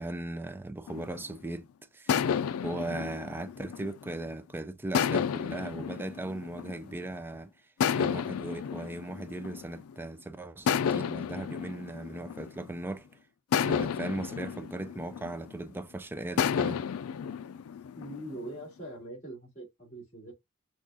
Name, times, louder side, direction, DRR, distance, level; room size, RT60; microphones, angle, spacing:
voice 1, 0.0-1.7 1.9-2.3 2.6-7.5 8.0-13.1 13.6-16.8, right 2 dB, 10° right, 0.3 m, -38 dB
sound 1, 0.9-1.5 2.1-4.3 4.9-7.1 7.8-10.1 10.7-12.9 13.5-15.8 16.4-18.6, left 7 dB, 85° left, 0.4 m, -32 dB
voice 2, 17.9-20.3, right 1 dB, 35° left, 2.6 m, -42 dB
6.1 x 2.3 x 2.7 m
head